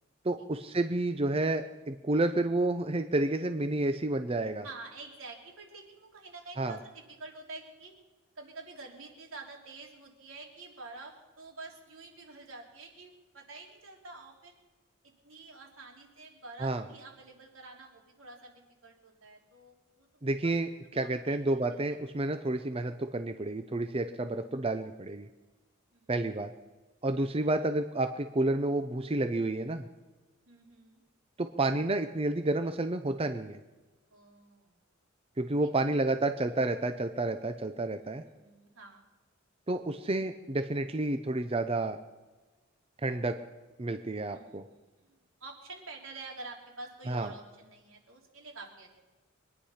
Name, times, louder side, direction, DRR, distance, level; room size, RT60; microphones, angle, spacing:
voice 1, 0.2-4.7 6.6-6.8 16.6-16.8 20.2-25.3 26.1-26.5 27.0-29.9 31.4-33.6 35.4-38.2 39.7-42.0 43.0-43.4 43.8-44.6 47.1-47.3, right 2 dB, 30° right, 8 dB, 0.6 m, -30 dB
voice 2, 4.6-7.9 8.4-14.5 15.2-18.5 18.8-20.1 20.4-20.5 21.0-21.4 24.3-24.7 25.9-26.1 30.5-31.0 34.1-34.7 37.9-39.1 44.3-44.6 45.0-48.9, right 3 dB, 80° right, 0 dB, 3.4 m, -48 dB
23.5 x 10.0 x 5.7 m, 1.2 s
head